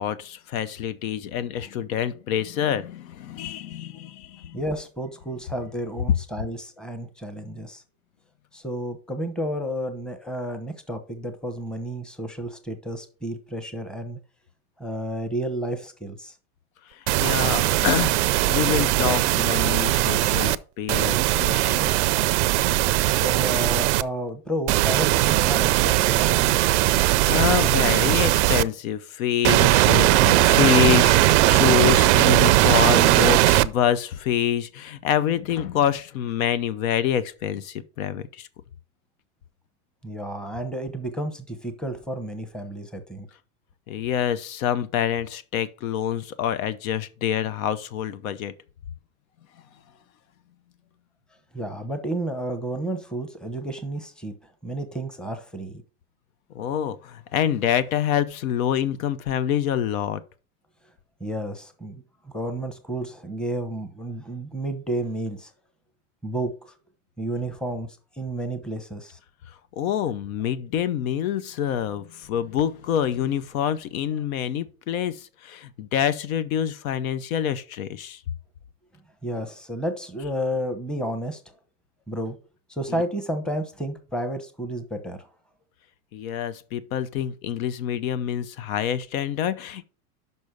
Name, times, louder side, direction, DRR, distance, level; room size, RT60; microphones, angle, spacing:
voice 1, 0.0-4.6 16.9-22.0 22.6-22.7 26.9-38.5 43.9-48.5 56.5-60.2 69.8-78.2 82.9-83.0 86.1-89.8, left 10 dB, 65° left, 0.8 m, -26 dB
voice 2, 4.5-7.8 8.5-14.2 14.8-16.3 23.1-26.4 40.0-43.3 51.5-54.3 54.6-55.8 61.2-65.5 66.2-66.7 67.2-69.2 79.2-81.4 82.1-82.4 82.7-85.3, right 1 dB, ahead, 0.8 m, -31 dB
sound 1, 17.1-20.6 20.9-24.0 24.7-28.6 29.4-33.7, right 17 dB, 55° right, 0.5 m, -19 dB
6.2 x 5.4 x 5.1 m
supercardioid pair, 130°, 44 cm